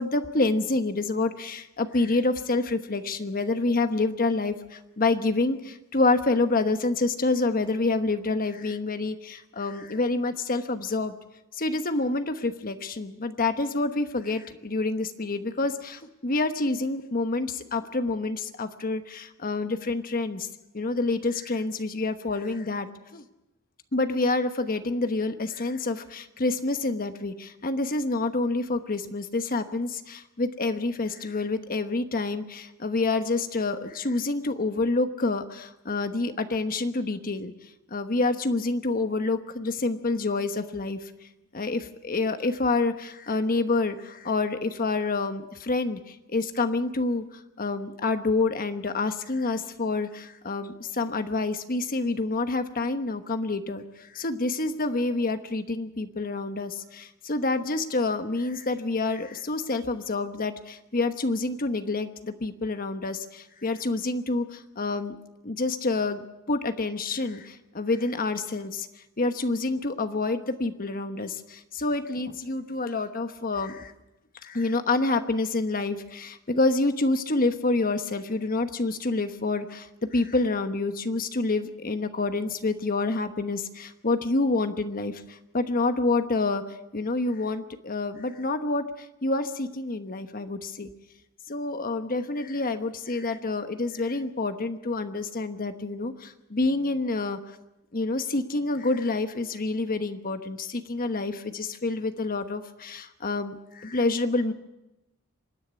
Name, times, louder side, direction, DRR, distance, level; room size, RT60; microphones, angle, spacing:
voice 1, 0.0-11.1 11.5-20.5 20.7-23.2 23.9-37.5 37.9-41.0 41.5-47.2 47.6-65.2 65.4-68.9 69.2-73.9 74.4-79.9 80.1-85.2 85.5-86.6 86.9-88.8 89.2-90.9 91.5-97.4 97.9-104.5, left 3 dB, 40° left, 8 dB, 1.1 m, -27 dB
25.5 x 10.5 x 9.7 m, 0.94 s
head